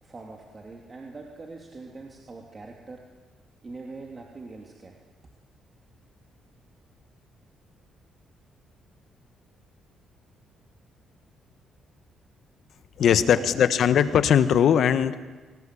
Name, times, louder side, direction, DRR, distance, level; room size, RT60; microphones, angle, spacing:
voice 1, 0.0-3.0 3.6-5.0 13.2-13.7, right 3 dB, 30° right, 1 dB, 3.0 m, -42 dB
voice 2, 13.0-15.2, left 8 dB, 65° left, 12 dB, 1.3 m, -20 dB
25.0 x 19.0 x 8.6 m, 1.3 s
cardioid pair, 90°, 0 cm